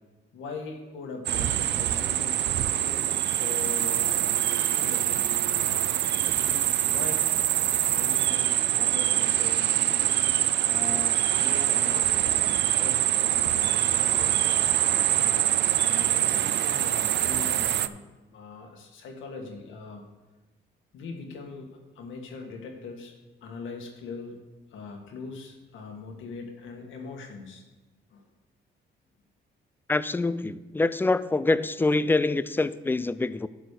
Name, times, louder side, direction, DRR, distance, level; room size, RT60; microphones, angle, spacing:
voice 1, 0.3-7.3 7.9-18.0 18.3-20.0 20.9-23.1 23.4-24.4 24.7-27.6 28.1-28.2, left 4 dB, 80° left, 3 dB, 1.7 m, -41 dB
sound 1, 1.3-17.9, right 12 dB, 60° right, 0.4 m, -24 dB
voice 2, 29.9-33.5, left 2 dB, 10° left, 16 dB, 0.3 m, -25 dB
11.5 x 4.2 x 6.6 m, 1.2 s
cardioid pair, 90°, 20 cm